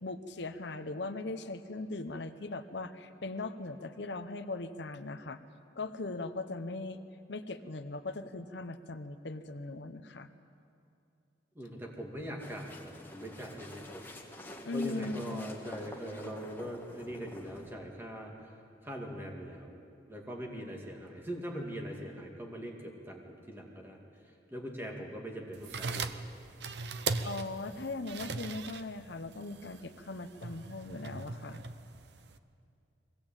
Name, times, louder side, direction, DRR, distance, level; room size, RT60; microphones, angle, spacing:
voice 1, 0.0-5.4 5.8-7.0 7.3-10.3 14.6-15.5 27.2-31.6, left 2 dB, 65° left, 10 dB, 0.8 m, -39 dB
voice 2, 11.6-14.1 14.7-18.5 18.8-19.8 20.1-24.0 24.5-26.1, equal, 10° right, 0 dB, 2.4 m, -41 dB
sound 1, 12.4-17.8, left 1 dB, 10° left, 1.7 m, -49 dB
sound 2, 25.5-32.4, right 4 dB, 60° right, 0.9 m, -40 dB
22.0 x 16.5 x 8.9 m, 2.6 s
head